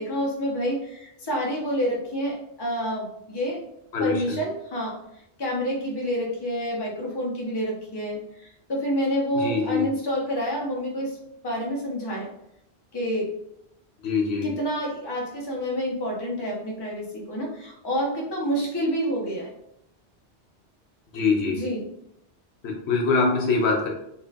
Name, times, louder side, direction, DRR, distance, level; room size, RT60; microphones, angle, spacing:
voice 1, 0.0-3.6 4.0-5.0 5.4-11.2 11.4-12.3 12.9-13.3 14.4-19.5 21.5-21.8, equal, 25° left, -3 dB, 0.7 m, -28 dB
voice 2, 3.9-4.4 9.3-9.9 14.0-14.5 21.1-21.6 22.6-23.9, left 4 dB, 75° left, 0 dB, 0.9 m, -23 dB
4.1 x 2.8 x 2.3 m, 0.79 s
omnidirectional pair, 1.1 m